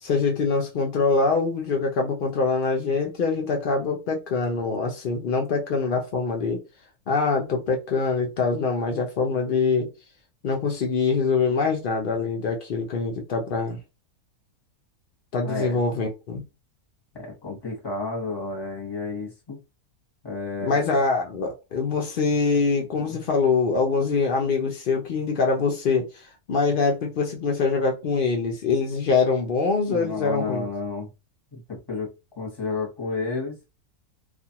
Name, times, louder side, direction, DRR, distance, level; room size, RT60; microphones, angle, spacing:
voice 1, 0.0-6.6 7.1-9.9 10.4-13.8 15.3-16.4 20.6-30.7, left 4 dB, 90° left, 0.4 m, -24 dB
voice 2, 15.4-15.8 17.1-19.6 20.2-20.8 23.0-23.2 29.9-31.1 31.5-33.6, left 3 dB, 20° left, 0.8 m, -31 dB
2.5 x 2.4 x 2.8 m
omnidirectional pair, 1.6 m